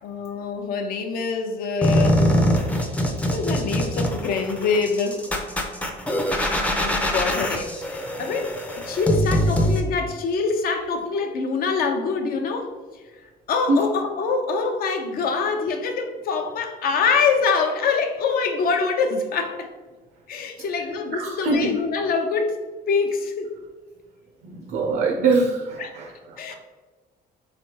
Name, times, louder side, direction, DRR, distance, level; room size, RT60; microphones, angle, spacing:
voice 1, 0.0-2.3 3.2-5.3 6.8-12.7 13.5-19.7 20.3-22.6 22.9-23.5 25.8-26.0 26.4-26.5, left 4 dB, 60° left, 5 dB, 0.6 m, -25 dB
sound 1, 1.8-9.8, equal, 10° left, 0.5 m, -23 dB
voice 2, 21.1-21.7 24.4-26.5, right 3 dB, 65° right, 2 dB, 0.6 m, -23 dB
3.7 x 3.3 x 2.8 m, 1.3 s
cardioid pair, 110°, 17 cm